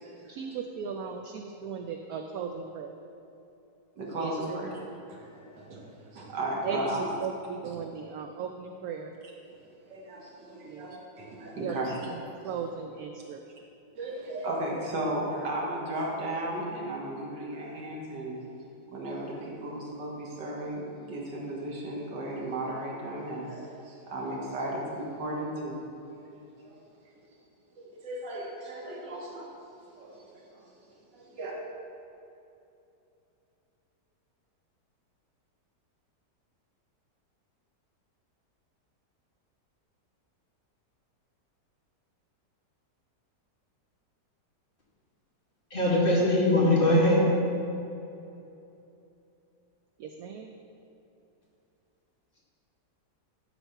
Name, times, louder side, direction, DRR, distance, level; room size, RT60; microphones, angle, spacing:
voice 1, 0.3-2.9 4.2-4.6 6.6-9.2 10.6-10.9 11.6-11.8 12.0-13.4 50.0-50.5, right 6 dB, 70° right, 4 dB, 0.9 m, -37 dB
voice 2, 4.0-4.7 5.1-5.9 6.1-7.1 7.6-7.7 9.9-12.4 14.0-18.4 18.9-25.8 26.1-26.3 26.6-26.8 27.8-29.5 30.0-31.5, right 1 dB, 90° right, -2 dB, 2.1 m, -35 dB
voice 3, 45.7-47.3, left 1 dB, 30° left, -6 dB, 1.8 m, -21 dB
11.5 x 4.2 x 5.7 m, 2.8 s
omnidirectional pair, 1.9 m